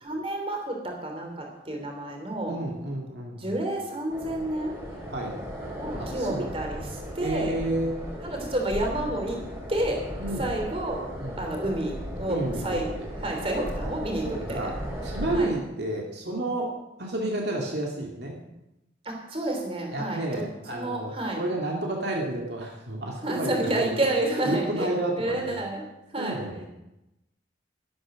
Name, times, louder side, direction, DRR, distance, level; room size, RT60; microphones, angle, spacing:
voice 1, 0.0-2.6 3.4-4.8 5.8-7.5 8.2-9.4 9.7-10.0 10.4-11.0 11.4-12.9 13.2-14.7 15.3-15.5 19.0-20.4 20.7-21.4 23.2-25.8 26.1-26.4, right 1 dB, 30° right, 2 dB, 3.3 m, -30 dB
voice 2, 2.5-3.6 5.1-5.3 6.0-6.5 7.2-8.0 10.2-10.5 11.2-11.4 12.3-13.1 14.2-14.7 15.0-16.7 17.0-18.4 19.9-24.1 24.4-25.5 26.2-26.6, right 1 dB, 60° right, -1 dB, 2.3 m, -31 dB
sound 1, 4.1-15.5, equal, 15° right, 3.3 m, -36 dB
12.5 x 12.5 x 6.3 m, 0.92 s
head